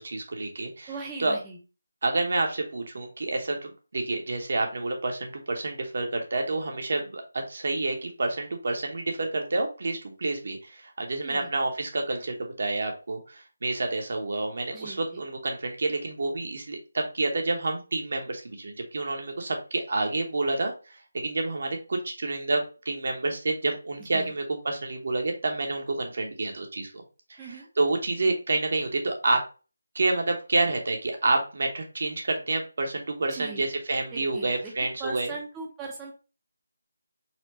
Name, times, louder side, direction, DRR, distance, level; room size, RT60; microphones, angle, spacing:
voice 1, 0.0-0.9 1.2-1.4 2.0-27.0 27.3-29.4 29.9-35.3, right 2 dB, 55° right, 3 dB, 1.0 m, -29 dB
voice 2, 0.9-1.6 11.2-11.5 14.7-15.0 24.1-24.3 27.4-27.7 33.3-33.6 34.1-34.7 35.0-36.1, right 4 dB, 10° right, -1 dB, 0.7 m, -39 dB
4.3 x 2.3 x 2.8 m, 0.33 s
figure-of-eight pair, 165°, 0 cm